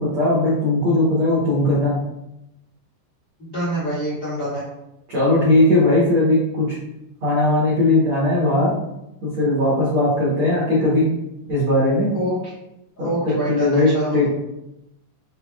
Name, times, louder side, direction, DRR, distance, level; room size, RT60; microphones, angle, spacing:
voice 1, 0.0-1.9 5.1-6.8 7.2-8.7 9.2-11.1 11.5-12.1 13.0-14.3, left 2 dB, 70° right, -8 dB, 1.3 m, -18 dB
voice 2, 3.4-4.6 12.1-12.5 13.0-14.2, equal, 45° left, -11 dB, 1.1 m, -26 dB
6.3 x 2.2 x 2.3 m, 0.89 s
omnidirectional pair, 3.8 m